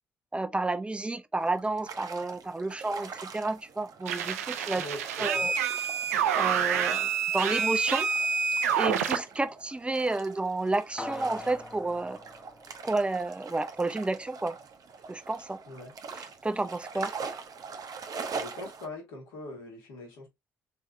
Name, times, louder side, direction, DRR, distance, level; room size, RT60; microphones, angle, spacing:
voice 1, 0.3-4.8 5.2-5.5 6.4-8.1 8.8-12.2 12.8-14.6 15.1-15.6 16.2-17.1, right 2 dB, 15° right, 0.5 m, -31 dB
sound 1, 1.3-18.9, right 5 dB, 50° right, 0.7 m, -43 dB
sound 2, 4.1-9.2, right 7 dB, 85° right, 0.4 m, -27 dB
voice 2, 4.7-5.5 15.7-15.9 16.9-17.1 18.3-20.3, left 2 dB, 75° left, 1.6 m, -42 dB
sound 3, 11.0-13.5 13.9-14.0, left 1 dB, 5° left, 1.1 m, -43 dB
3.4 x 3.2 x 2.5 m
hypercardioid pair, 45°, 8 cm